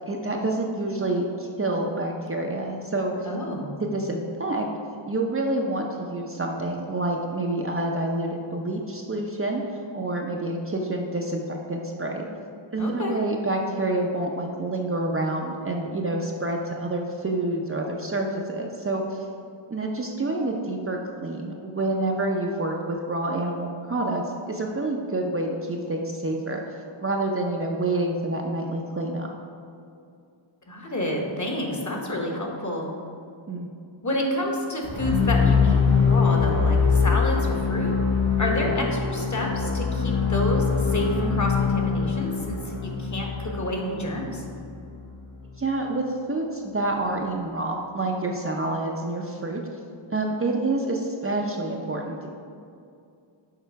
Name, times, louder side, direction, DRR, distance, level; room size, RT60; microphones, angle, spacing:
voice 1, 0.1-3.1 3.8-4.7 5.1-9.6 9.9-12.3 12.7-19.2 19.7-26.6 27.0-29.3 33.5-33.7 38.7-38.9 45.6-49.6 50.1-52.3, right 2 dB, 30° right, 0 dB, 0.6 m, -28 dB
voice 2, 3.2-3.8 12.8-13.2 30.7-32.9 34.0-37.9 38.4-44.4, left 1 dB, 35° left, 0 dB, 1.2 m, -29 dB
sound 1, 34.8-44.9, left 5 dB, 75° left, 1.5 m, -23 dB
6.7 x 4.4 x 4.6 m, 2.4 s
wide cardioid pair, 80°, 49 cm